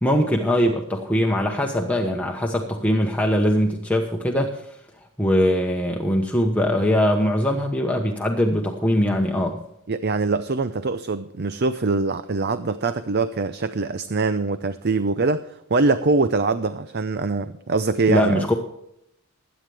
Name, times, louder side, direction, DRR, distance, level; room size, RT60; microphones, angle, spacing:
voice 1, 0.0-4.8 5.2-9.6 18.1-18.5, equal, 5° left, 1 dB, 1.1 m, -21 dB
voice 2, 9.9-18.5, right 3 dB, 50° right, 12 dB, 0.6 m, -23 dB
20.5 x 9.3 x 3.5 m, 0.78 s
head